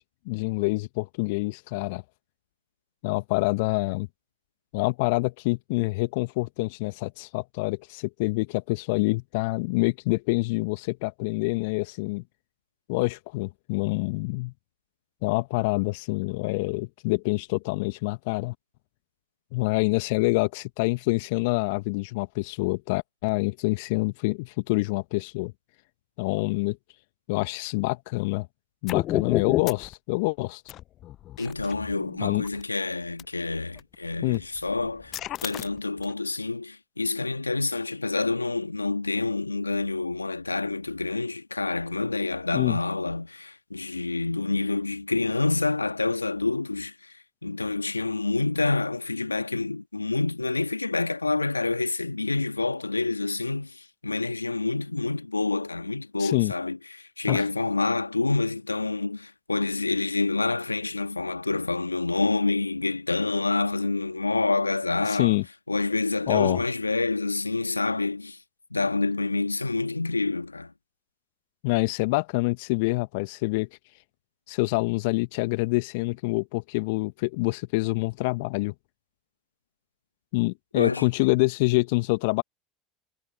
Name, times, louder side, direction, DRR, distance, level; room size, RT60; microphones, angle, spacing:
voice 1, 0.0-2.0 3.0-4.1 4.7-12.2 12.9-14.5 15.2-18.5 19.5-25.5 26.2-26.8 27.3-28.5 28.8-30.6 32.2-32.4 34.2-34.4 42.5-42.8 56.2-56.5 57.3-57.4 65.1-65.4 66.3-66.6 71.6-73.7 74.5-78.7 80.3-82.4, left 25 dB, 60° left, 1.4 m, -26 dB
sound 1, 28.9-29.9 30.7-32.6 33.2-33.3 33.8-33.9 34.3-36.1, left 13 dB, 45° left, 0.5 m, -31 dB
voice 2, 31.4-65.4 65.7-68.4 68.7-70.7 80.7-81.0, left 3 dB, 90° left, 1.7 m, -27 dB
figure-of-eight pair, 70°, 0 cm